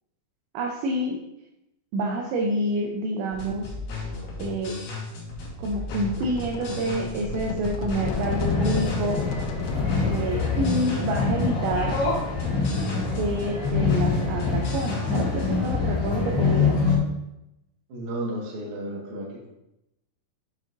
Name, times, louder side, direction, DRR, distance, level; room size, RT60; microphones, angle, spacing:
voice 1, 0.5-1.2 1.9-3.7 4.4-4.8 5.6-9.2 10.0-11.9 13.2-16.7, right 1 dB, 80° right, 1 dB, 2.6 m, -28 dB
sound 1, 3.3-15.9, left 3 dB, 60° left, 2.5 m, -36 dB
sound 2, 5.7-10.6, left 5 dB, 85° left, 3.3 m, -35 dB
sound 3, 8.0-17.0, left 4 dB, 45° left, 2.9 m, -25 dB
voice 2, 17.9-19.5, right 1 dB, 65° right, -3 dB, 2.0 m, -33 dB
8.7 x 6.2 x 2.6 m, 0.89 s
omnidirectional pair, 6.0 m